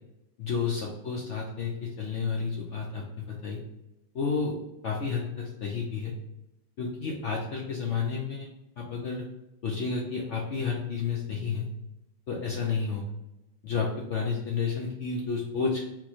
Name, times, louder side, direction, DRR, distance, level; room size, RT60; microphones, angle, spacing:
voice 1, 0.4-3.6 4.1-4.6 4.8-6.1 6.8-8.5 8.8-9.3 9.6-11.7 12.3-13.0 13.6-15.8, left 5 dB, 80° left, -1 dB, 0.6 m, -31 dB
4.2 x 3.0 x 4.1 m, 0.93 s
omnidirectional pair, 2.1 m